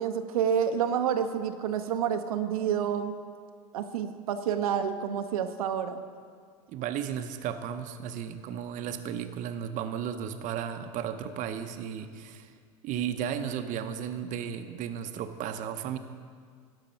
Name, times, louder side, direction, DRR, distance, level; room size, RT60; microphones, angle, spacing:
voice 1, 0.0-3.2 3.7-6.0, right 8 dB, 85° right, 7 dB, 0.7 m, -29 dB
voice 2, 6.7-12.5 12.8-16.0, right 9 dB, 45° right, 8 dB, 0.7 m, -34 dB
12.0 x 5.7 x 5.2 m, 2.1 s
hypercardioid pair, 100°, 18 cm